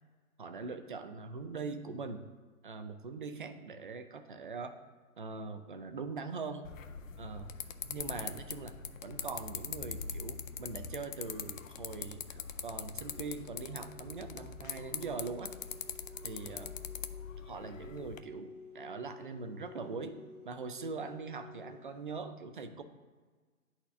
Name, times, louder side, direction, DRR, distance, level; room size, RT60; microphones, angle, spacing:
voice 1, 0.4-2.2 2.6-4.8 5.2-6.7 7.2-7.5 7.8-8.7 9.0-15.5 16.2-16.7 17.4-20.2 20.4-22.8, right 4 dB, 40° right, 8 dB, 0.4 m, -42 dB
sound 1, 6.6-18.2, left 7 dB, 60° left, 0.5 m, -43 dB
sound 2, 12.9-22.0, left 3 dB, 5° right, 0.7 m, -53 dB
9.8 x 4.3 x 2.4 m, 1.4 s
hypercardioid pair, 140°, 44 cm